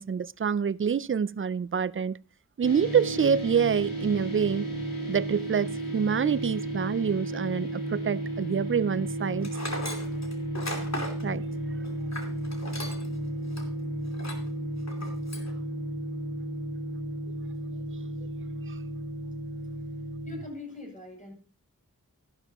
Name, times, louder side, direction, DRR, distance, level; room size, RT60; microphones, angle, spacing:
voice 1, 0.0-2.2 2.6-4.7 5.1-9.5 11.2-11.4, right 7 dB, 40° right, 0.4 m, -26 dB
sound 1, 2.6-20.4, right 1 dB, 85° left, 4.3 m, -33 dB
Tools, 9.4-13.2 13.5-13.6 14.1-14.5 14.9-15.5, left 1 dB, 50° left, 2.7 m, -37 dB
voice 2, 20.2-21.3, left 1 dB, 25° left, 7.8 m, -41 dB
13.5 x 12.0 x 3.0 m
wide cardioid pair, 55°, 33 cm